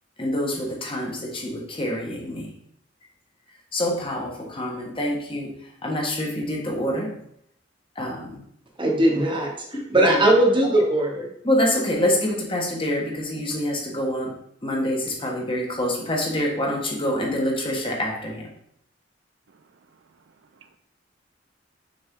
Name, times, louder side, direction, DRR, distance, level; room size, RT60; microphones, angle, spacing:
voice 1, 0.2-2.5 3.7-5.5 5.8-7.1 7.9-8.4 11.4-14.3 14.6-18.5, left 1 dB, 30° left, -1 dB, 1.2 m, -26 dB
voice 2, 8.8-11.3, right 1 dB, 25° right, 1 dB, 1.1 m, -20 dB
voice 3, 19.5-20.8, right 6 dB, 65° right, 8 dB, 0.4 m, -58 dB
6.3 x 4.3 x 3.7 m, 0.72 s
head